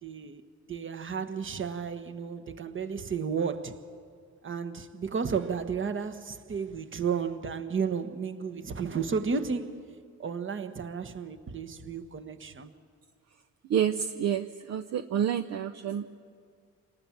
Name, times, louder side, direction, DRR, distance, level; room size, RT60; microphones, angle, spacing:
voice 1, 0.0-0.4 0.7-3.8 4.4-9.8 10.2-12.7, right 6 dB, 40° right, 9 dB, 1.4 m, -33 dB
voice 2, 13.7-16.1, right 9 dB, 60° right, 9 dB, 0.8 m, -29 dB
27.5 x 19.0 x 7.4 m, 2.2 s
cardioid pair, 90°, 30 cm